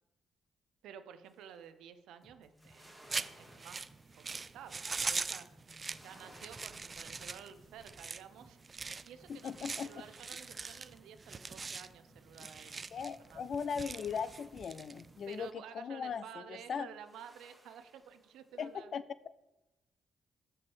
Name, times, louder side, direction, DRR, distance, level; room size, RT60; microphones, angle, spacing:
voice 1, 0.8-3.9 4.2-5.5 6.0-8.6 9.1-12.9 13.2-13.5 15.3-18.9, right 8 dB, 85° right, 10 dB, 0.6 m, -52 dB
sound 1, 1.3-1.7 2.3-5.0 5.6-8.4 8.8-11.8 12.7-15.4 16.7-18.8, right 1 dB, 5° right, 1.7 m, -62 dB
sound 2, 2.2-15.3, equal, 25° left, 1.7 m, -65 dB
sound 3, 3.1-15.5, right 4 dB, 35° right, 0.3 m, -42 dB
voice 2, 9.3-9.9 12.9-15.5 15.7-16.9 18.6-19.0, left 6 dB, 55° left, 15 dB, 0.4 m, -38 dB
5.9 x 4.7 x 6.3 m, 0.97 s
cardioid pair, 90°, 0 cm